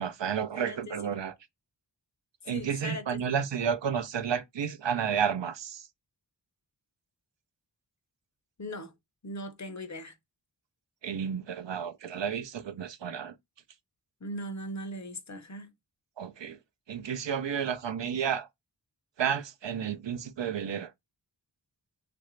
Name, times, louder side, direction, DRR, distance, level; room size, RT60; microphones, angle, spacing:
voice 1, 0.0-1.3 2.5-5.9 11.0-13.4 16.2-16.6 16.9-18.5 19.2-20.9, right 7 dB, 80° right, 0.5 m, -31 dB
voice 2, 2.5-3.0 8.6-8.9 9.2-10.1 14.2-15.7, equal, 40° left, 0.6 m, -39 dB
3.2 x 2.5 x 3.0 m
wide cardioid pair, 50°, 43 cm